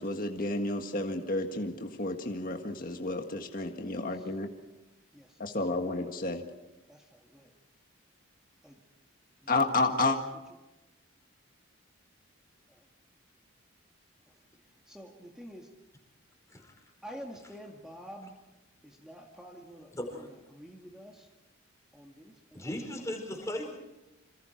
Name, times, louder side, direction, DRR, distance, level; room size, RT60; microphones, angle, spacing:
voice 1, 0.0-4.5 5.4-6.4 9.5-10.2, left 2 dB, 45° left, 4 dB, 1.7 m, -31 dB
voice 2, 3.9-4.3 5.1-5.5 6.9-7.5 8.6-8.8 9.4-10.1 12.7-12.8 14.6-15.7 17.0-18.4 18.8-21.3 21.9-22.8, equal, 5° right, 0 dB, 2.0 m, -49 dB
voice 3, 20.0-20.3 22.5-23.8, left 1 dB, 15° left, 2 dB, 5.0 m, -37 dB
27.5 x 27.0 x 4.6 m, 1.0 s
head